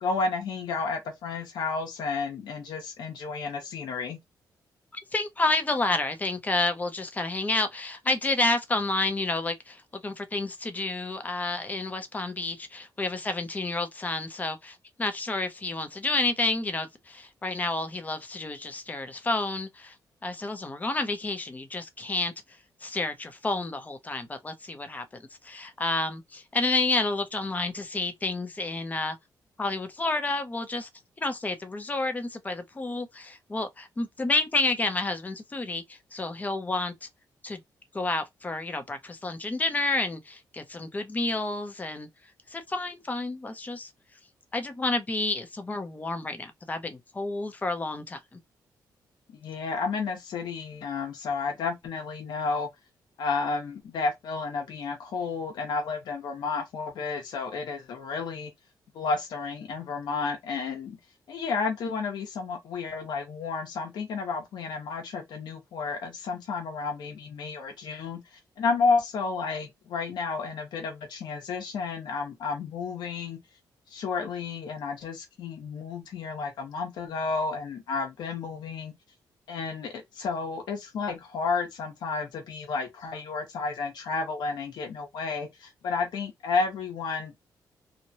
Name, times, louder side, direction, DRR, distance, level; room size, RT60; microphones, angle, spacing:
voice 1, 0.0-4.2 49.4-52.7 53.2-58.5 58.9-61.0 61.3-73.4 73.9-78.9 79.5-87.4, left 4 dB, 85° left, 0.8 m, -31 dB
voice 2, 5.1-19.9 20.2-22.3 22.8-29.2 29.6-30.9 31.2-37.1 37.4-37.6 37.9-42.1 42.5-43.9 44.5-48.4, left 2 dB, 20° left, 0.6 m, -30 dB
3.0 x 2.1 x 2.7 m
cardioid pair, 120°, 7 cm